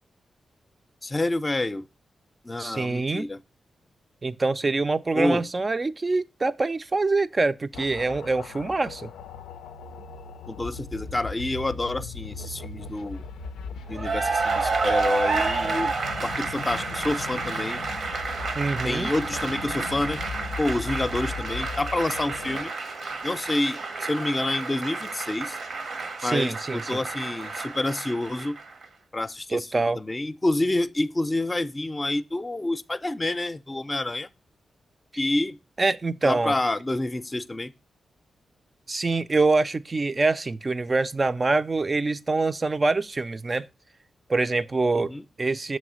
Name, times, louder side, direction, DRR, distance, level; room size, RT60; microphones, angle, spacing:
voice 1, 1.0-1.9 2.4-3.4 5.1-5.4 10.5-13.2 13.9-15.9 16.2-17.8 18.8-20.2 20.6-22.7 23.2-25.6 26.2-28.6 29.1-34.3 35.2-35.6 36.2-37.7 44.9-45.2, left 2 dB, 30° left, 0.5 m, -28 dB
voice 2, 2.6-3.3 4.2-9.1 18.6-19.1 26.2-27.0 29.5-30.0 35.8-36.6 38.9-43.7 44.3-45.1 45.4-45.8, right 3 dB, 40° right, 0.4 m, -25 dB
sound 1, 7.7-22.6, left 4 dB, 85° left, 0.4 m, -38 dB
Cheering / Applause, 13.9-28.8, right 4 dB, 70° right, 0.8 m, -30 dB
7.1 x 3.2 x 6.1 m
supercardioid pair, 40°, 0 cm